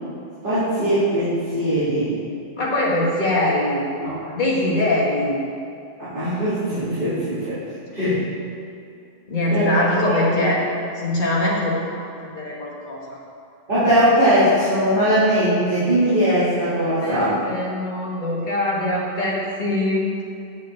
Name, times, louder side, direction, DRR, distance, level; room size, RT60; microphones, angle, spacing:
voice 1, 0.4-2.2 4.0-4.3 6.0-7.6 7.9-8.2 9.5-10.5 13.7-17.4, equal, 45° right, -14 dB, 2.4 m, -20 dB
voice 2, 2.6-3.9 4.3-5.4 9.3-10.6 10.9-13.2 17.0-20.1, left 1 dB, 40° left, -6 dB, 1.6 m, -22 dB
8.7 x 7.1 x 3.2 m, 2.5 s
omnidirectional pair, 1.3 m